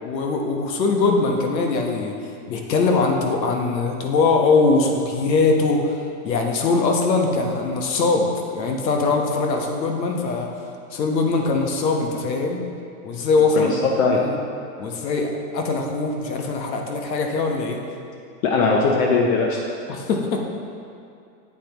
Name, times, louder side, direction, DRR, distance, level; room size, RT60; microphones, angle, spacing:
voice 1, 0.0-2.1 2.5-10.5 10.9-12.6 13.0-14.4 14.8-17.8 19.9-20.5, left 3 dB, 85° left, 2 dB, 1.3 m, -22 dB
voice 2, 13.5-14.2 18.4-19.6, left 4 dB, 55° left, 0 dB, 0.9 m, -19 dB
8.4 x 8.0 x 3.0 m, 2.5 s
supercardioid pair, 165°, 49 cm